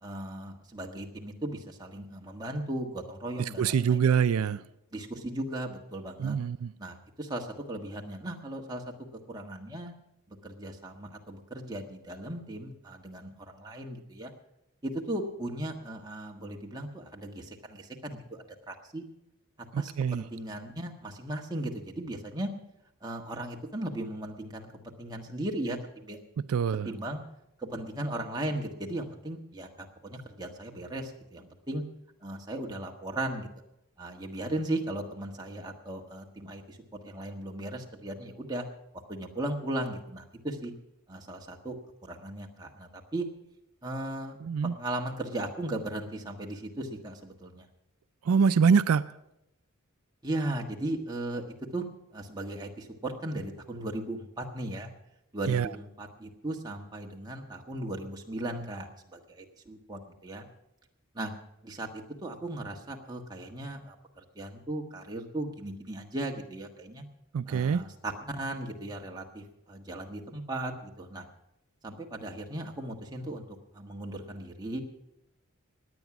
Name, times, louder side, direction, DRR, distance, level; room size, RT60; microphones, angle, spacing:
voice 1, 0.0-4.1 4.9-6.4 6.8-8.8 9.3-9.9 10.3-14.3 14.8-19.0 19.8-22.5 23.0-26.2 26.8-27.2 27.6-31.8 32.2-33.5 34.0-36.8 37.0-38.6 39.1-40.7 41.1-41.8 42.0-43.3 43.8-44.4 44.8-47.6 50.2-51.9 52.1-54.9 55.3-60.4 61.1-61.3 61.6-67.0 67.5-71.3 71.8-73.4 73.7-74.8, right 1 dB, 20° right, 1 dB, 1.5 m, -37 dB
voice 2, 3.6-4.6 6.2-6.7 19.7-20.2 26.5-26.9 44.4-44.7 48.3-49.1 55.5-55.7 67.3-67.8, right 6 dB, 80° right, 14 dB, 0.4 m, -24 dB
17.5 x 9.9 x 6.0 m, 0.85 s
head